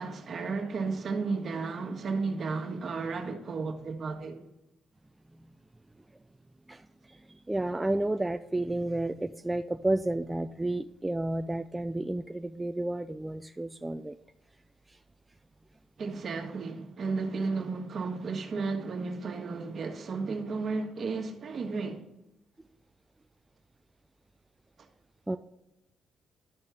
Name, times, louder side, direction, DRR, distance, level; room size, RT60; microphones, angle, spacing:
voice 1, 0.0-4.4 16.0-22.0, right 4 dB, 50° right, 1.5 m, -33 dB
voice 2, 6.7-14.2 14.9-15.0 25.3-25.4, right 1 dB, 10° right, 0.3 m, -31 dB
12.5 x 4.4 x 3.5 m
cardioid pair, 90°, 0 cm